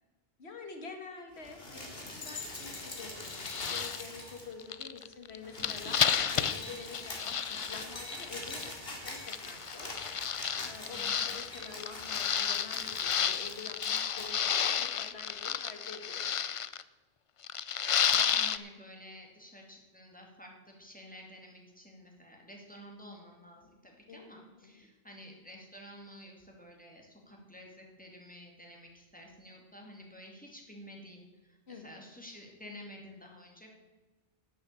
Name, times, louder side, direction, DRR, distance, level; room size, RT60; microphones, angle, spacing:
voice 1, 0.4-3.4 3.7-10.0 10.6-16.3 24.1-24.8 31.7-31.9, left 4 dB, 85° left, 4 dB, 2.0 m, -47 dB
sound 1, 1.4-4.7 5.0-5.1 5.3-14.3 15.3-15.4, left 2 dB, 65° left, 2.6 m, -44 dB
sound 2, 2.6-2.8 3.1-4.0 4.6-8.7 9.3-16.8 17.4-18.6, left 7 dB, 50° left, 0.4 m, -32 dB
voice 2, 5.6-6.0 6.4-6.8 10.9-11.3 18.1-33.7, equal, 10° left, 0 dB, 2.4 m, -51 dB
11.0 x 7.6 x 8.3 m, 1.3 s
omnidirectional pair, 1.1 m